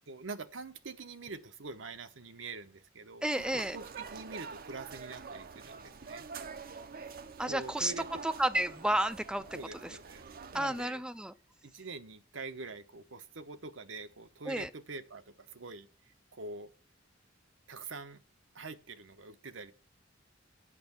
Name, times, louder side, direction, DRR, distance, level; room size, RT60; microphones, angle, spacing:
voice 1, 0.1-6.2 7.5-8.2 9.5-10.2 10.5-11.0 11.6-15.9 16.3-16.7 17.7-18.2 18.5-19.7, right 3 dB, 70° right, 1.0 m, -45 dB
voice 2, 3.2-3.8 7.4-7.9 8.2-9.5 10.5-11.3 14.5-14.7, right 1 dB, 5° right, 0.5 m, -31 dB
sound 1, 3.4-10.9, right 5 dB, 50° right, 0.7 m, -46 dB
8.7 x 6.3 x 7.2 m
head